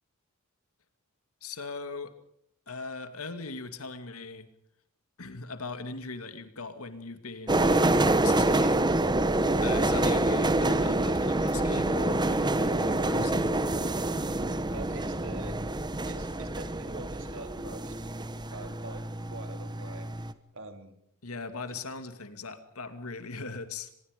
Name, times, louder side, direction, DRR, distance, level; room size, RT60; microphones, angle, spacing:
voice 1, 1.4-2.1 2.7-4.5 5.2-8.9 9.6-13.5 21.2-23.9, left 3 dB, 75° left, 9 dB, 2.4 m, -39 dB
sound 1, 7.5-20.3, right 2 dB, 20° right, 1.1 m, -27 dB
voice 2, 14.7-15.6 16.1-18.0 18.5-20.1 20.5-21.0 21.7-21.8, right 2 dB, 60° right, 7 dB, 3.2 m, -44 dB
24.5 x 22.0 x 5.2 m, 0.72 s
head